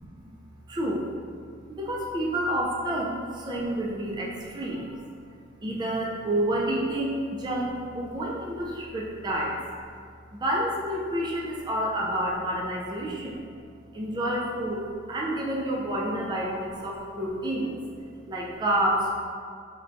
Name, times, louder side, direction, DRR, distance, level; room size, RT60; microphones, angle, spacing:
voice 1, 0.7-1.1 1.7-5.1 5.6-9.6 10.3-13.4 13.9-17.9 18.3-19.1, right 1 dB, 25° right, -3 dB, 0.3 m, -29 dB
4.5 x 2.2 x 2.5 m, 2.2 s
head